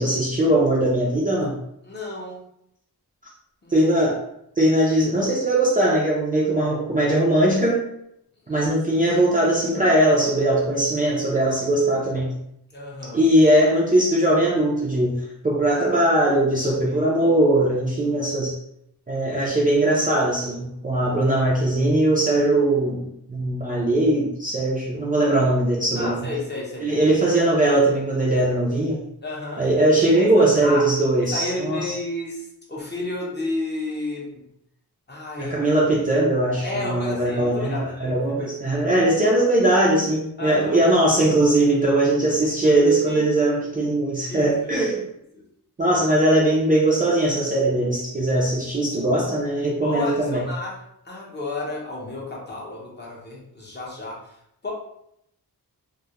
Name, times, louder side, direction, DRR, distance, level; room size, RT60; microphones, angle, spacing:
voice 1, 0.0-1.6 3.7-4.2 4.6-7.8 8.5-12.4 13.1-18.6 19.1-26.3 26.8-29.0 29.6-32.0 35.4-45.0 45.8-50.5, right 1 dB, 25° right, -5 dB, 0.4 m, -20 dB
voice 2, 1.8-2.4 3.6-3.9 8.5-8.7 12.7-13.2 16.9-17.0 26.0-27.0 29.2-29.6 30.1-30.3 30.6-30.9 31.2-34.4 35.1-35.6 36.6-38.5 40.4-40.8 43.1-43.2 44.3-44.8 49.8-50.8 51.0-54.2 54.6-54.7, left 2 dB, 30° left, -4 dB, 0.6 m, -32 dB
2.3 x 2.1 x 2.8 m, 0.76 s
wide cardioid pair, 155°, 38 cm